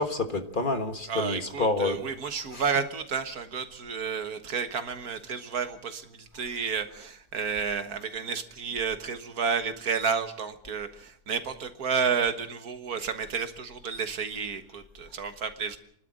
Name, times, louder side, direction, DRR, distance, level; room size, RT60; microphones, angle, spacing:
voice 1, 0.0-2.0 2.5-2.6, left 2 dB, 35° left, 7 dB, 1.6 m, -28 dB
voice 2, 1.1-6.1 6.3-15.8, right 6 dB, 80° right, 9 dB, 2.0 m, -31 dB
29.0 x 12.0 x 7.7 m, 0.66 s
omnidirectional pair, 1.6 m